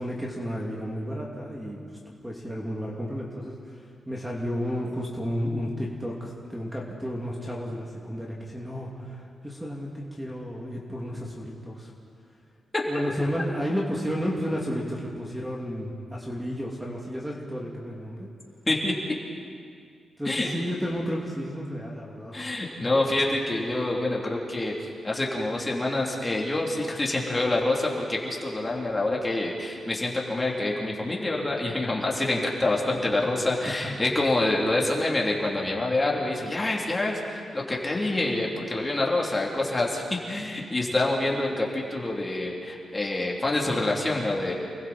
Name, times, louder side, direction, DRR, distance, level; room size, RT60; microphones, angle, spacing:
voice 1, 0.0-11.9 12.9-18.3 20.2-22.5 33.7-33.9, equal, 5° right, -3 dB, 2.6 m, -32 dB
voice 2, 20.2-20.6 22.3-44.5, left 2 dB, 20° left, -2 dB, 3.3 m, -26 dB
29.0 x 20.5 x 4.4 m, 2.2 s
cardioid pair, 110°, 0 cm